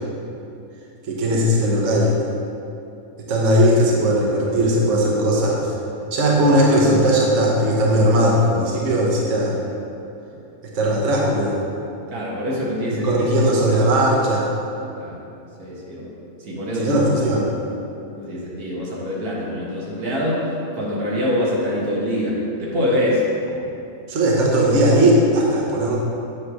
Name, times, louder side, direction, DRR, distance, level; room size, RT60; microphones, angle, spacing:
voice 1, 1.1-2.1 3.2-5.7 6.1-9.6 10.6-11.6 12.9-14.5 16.8-17.5 24.1-26.0, right 1 dB, 55° right, -3 dB, 1.2 m, -18 dB
voice 2, 12.1-13.1 13.4-13.5 14.9-15.2 15.6-16.1 16.4-17.0 18.1-20.4 20.7-23.3, left 1 dB, 85° right, -5 dB, 1.9 m, -24 dB
8.2 x 3.2 x 6.3 m, 2.7 s
omnidirectional pair, 1.5 m